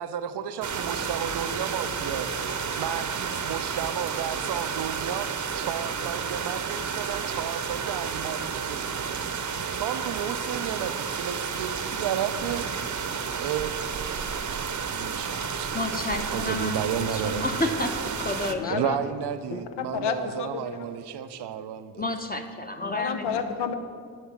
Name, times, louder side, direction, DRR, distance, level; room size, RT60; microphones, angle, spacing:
voice 1, 0.0-2.4 2.8-5.3 5.6-9.4 9.7-12.6 13.3-13.8 14.3-15.9 16.3-17.7 18.7-22.0, right 9 dB, 80° right, 11 dB, 0.5 m, -33 dB
sound 1, 0.6-18.5, right 6 dB, 45° right, 0.7 m, -31 dB
voice 2, 15.7-16.7 17.1-18.7 22.0-23.4, left 2 dB, 20° left, 4 dB, 0.8 m, -30 dB
voice 3, 18.5-19.0 19.5-20.9 22.8-23.7, left 7 dB, 85° left, 7 dB, 0.7 m, -31 dB
10.5 x 3.7 x 7.2 m, 2.1 s
supercardioid pair, 45°, 40 cm